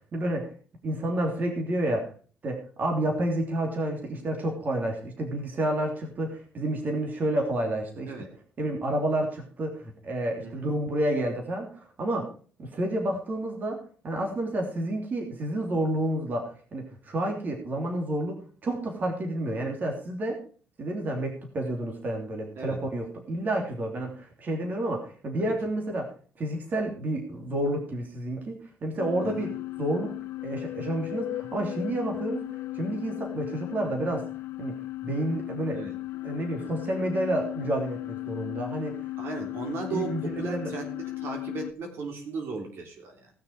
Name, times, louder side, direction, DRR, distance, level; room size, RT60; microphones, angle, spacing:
voice 1, 0.1-0.5 0.8-2.1 2.4-8.1 8.6-12.3 12.6-13.8 14.0-20.4 20.8-26.1 26.4-29.5 29.8-30.1 30.4-32.4 32.7-34.2 34.6-34.7 35.0-35.8 36.2-38.9 39.9-40.7, right 1 dB, 45° right, 2 dB, 3.2 m, -30 dB
voice 2, 22.5-22.9 24.1-24.2 25.4-25.5 29.2-29.5 35.7-35.9 39.2-43.3, right 4 dB, 65° right, 3 dB, 3.4 m, -36 dB
sound 1, 29.0-41.7, left 17 dB, 75° left, 0.5 m, -36 dB
18.5 x 6.6 x 4.8 m, 0.42 s
cardioid pair, 110°, 4 cm